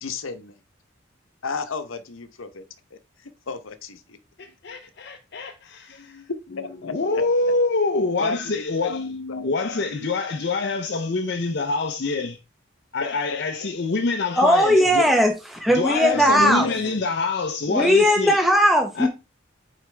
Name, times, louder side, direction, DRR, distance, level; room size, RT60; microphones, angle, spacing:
voice 1, 0.0-0.6 1.4-2.6 2.9-4.2 6.6-6.9 8.2-8.9 9.3-9.5 13.0-13.4 16.4-17.0 17.8-18.1, left 4 dB, 90° left, 0.8 m, -33 dB
voice 2, 4.4-6.3 6.8-12.4 12.9-15.1 15.7-18.4 19.0-19.1, left 3 dB, 55° left, 0.6 m, -25 dB
voice 3, 14.4-16.7 17.7-19.1, equal, ahead, 0.8 m, -18 dB
8.2 x 4.8 x 3.3 m
head